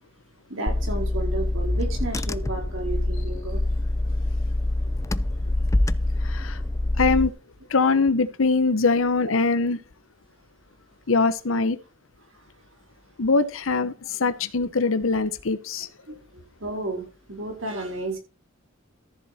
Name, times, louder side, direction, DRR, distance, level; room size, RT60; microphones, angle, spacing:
voice 1, 0.5-3.6 16.1-16.2 16.6-18.2, right 2 dB, 70° right, 4.5 m, -32 dB
Car / Engine, 0.7-7.3, left 1 dB, 15° left, 0.4 m, -25 dB
voice 2, 6.2-6.6 7.0-7.3 7.7-9.8 11.1-11.8 13.2-15.9, left 4 dB, 85° left, 0.9 m, -22 dB
14.0 x 7.3 x 4.2 m
head